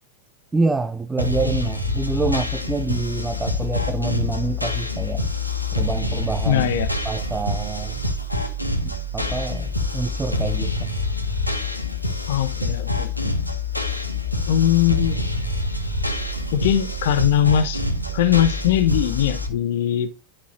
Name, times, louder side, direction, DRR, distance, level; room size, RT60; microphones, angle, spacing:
voice 1, 0.5-5.3 5.7-6.7 7.0-8.0 8.8-10.9, right 3 dB, 10° right, 0.6 m, -27 dB
sound 1, 1.2-19.5, left 2 dB, 90° left, 1.5 m, -26 dB
voice 2, 6.4-6.9 12.3-13.1 14.5-15.2 16.5-17.8 18.1-20.1, left 10 dB, 55° left, 1.1 m, -20 dB
11.5 x 5.7 x 2.6 m
figure-of-eight pair, 90°, 0 cm